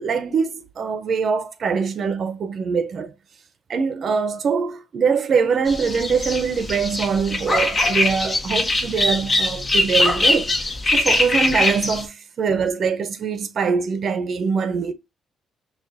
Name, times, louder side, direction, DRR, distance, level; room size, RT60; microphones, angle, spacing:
voice 1, 0.0-3.1 3.7-10.5 10.9-14.9, right 5 dB, 55° right, 0.7 m, -23 dB
sound 1, 5.7-12.0, left 2 dB, 30° left, 1.3 m, -22 dB
6.4 x 2.5 x 2.7 m
cardioid pair, 90°, 0 cm